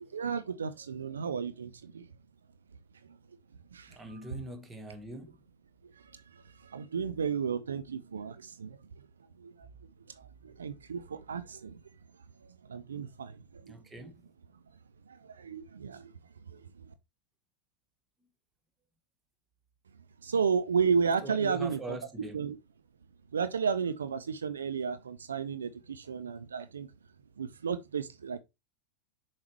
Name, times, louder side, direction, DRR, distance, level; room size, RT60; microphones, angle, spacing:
voice 1, 0.1-2.0 3.7-3.9 6.6-8.8 9.4-9.5 10.4-11.8 12.7-13.3 13.7-13.8 15.4-16.1 16.5-16.6 20.2-22.0 22.3-22.6 23.3-26.9 27.4-28.4, right 6 dB, 70° right, 0.5 m, -32 dB
voice 2, 3.9-5.4 13.7-14.1 21.2-22.4, right 2 dB, 15° right, 1.3 m, -42 dB
7.0 x 4.8 x 3.0 m
figure-of-eight pair, 90°, 0 cm